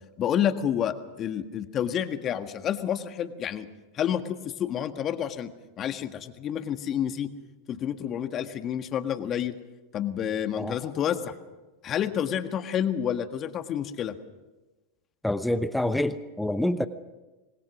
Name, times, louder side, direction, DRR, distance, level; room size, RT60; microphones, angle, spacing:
voice 1, 0.2-3.7 3.9-7.3 7.7-9.6 9.9-11.3 11.8-14.1, left 9 dB, 35° left, 9 dB, 1.6 m, -29 dB
voice 2, 15.2-16.9, left 1 dB, 5° left, 11 dB, 1.0 m, -27 dB
25.5 x 19.5 x 6.3 m, 1.2 s
hypercardioid pair, 100°, 0 cm